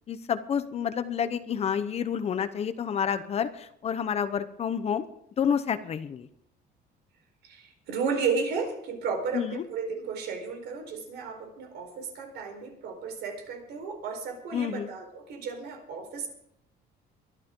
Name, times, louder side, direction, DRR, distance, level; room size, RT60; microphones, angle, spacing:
voice 1, 0.1-5.0 5.4-6.3 9.3-9.6 14.5-14.9, left 7 dB, 35° left, 11 dB, 0.9 m, -29 dB
voice 2, 7.4-16.3, right 5 dB, 70° right, 4 dB, 4.3 m, -33 dB
23.0 x 11.5 x 3.8 m, 0.74 s
cardioid pair, 155°, 18 cm